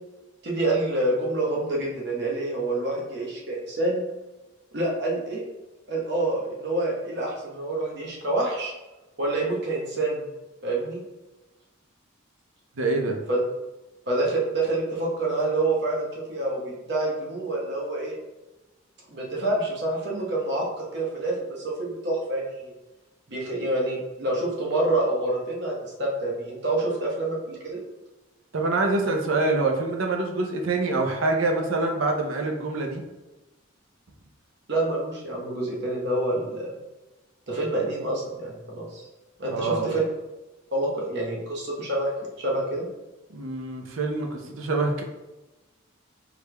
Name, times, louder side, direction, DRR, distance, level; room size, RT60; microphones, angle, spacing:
voice 1, 0.4-4.0 4.7-5.4 5.9-8.7 9.2-10.3 10.6-11.0 13.3-13.4 14.1-18.1 19.1-22.7 23.3-27.8 34.7-36.7 37.5-39.1 39.4-40.0 40.7-42.1 42.4-42.9, right 2 dB, 55° right, -3 dB, 0.9 m, -27 dB
voice 2, 12.8-13.2 28.5-33.0 39.5-39.9 43.3-45.0, right 3 dB, 80° right, 3 dB, 0.6 m, -25 dB
4.8 x 3.2 x 2.2 m, 1.1 s
head